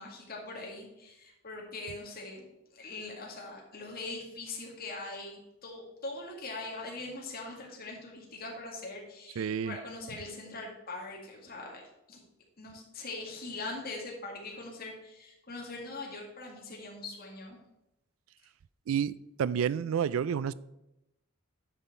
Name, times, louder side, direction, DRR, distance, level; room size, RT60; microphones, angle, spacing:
voice 1, 0.0-11.8 12.1-12.2 12.6-17.6, left 2 dB, 50° left, 2.0 m, -42 dB
voice 2, 9.4-9.8 18.9-19.1 19.4-20.5, right 8 dB, 80° right, 0.3 m, -29 dB
9.9 x 5.4 x 4.4 m
head